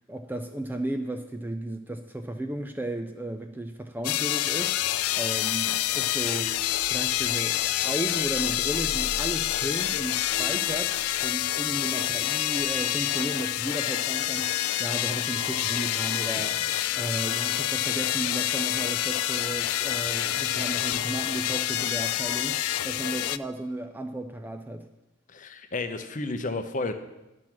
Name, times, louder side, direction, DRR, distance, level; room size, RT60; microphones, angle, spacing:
voice 1, 0.0-4.8 5.2-6.5 6.9-14.5 14.8-16.6 17.0-24.9, right 1 dB, 10° right, 7 dB, 0.3 m, -34 dB
sound 1, 4.0-23.4, left 14 dB, 90° left, 0.3 m, -27 dB
sound 2, 4.8-12.6, right 2 dB, 80° right, 1.4 m, -45 dB
voice 2, 25.3-26.9, left 3 dB, 35° left, 8 dB, 0.7 m, -31 dB
10.5 x 6.1 x 5.9 m, 0.97 s
head